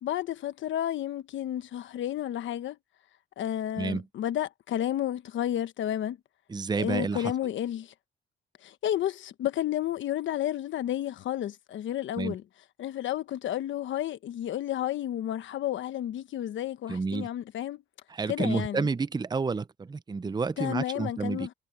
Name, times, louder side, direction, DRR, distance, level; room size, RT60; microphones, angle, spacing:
voice 1, 0.0-2.8 3.4-6.2 6.8-7.9 8.6-12.4 12.8-17.8 18.3-18.9 20.6-21.5, left 11 dB, 70° left, 1.2 m, -31 dB
voice 2, 6.5-7.3 12.2-12.4 16.9-17.3 18.1-21.5, right 4 dB, 20° right, 0.7 m, -30 dB
cardioid pair, 90°, 20 cm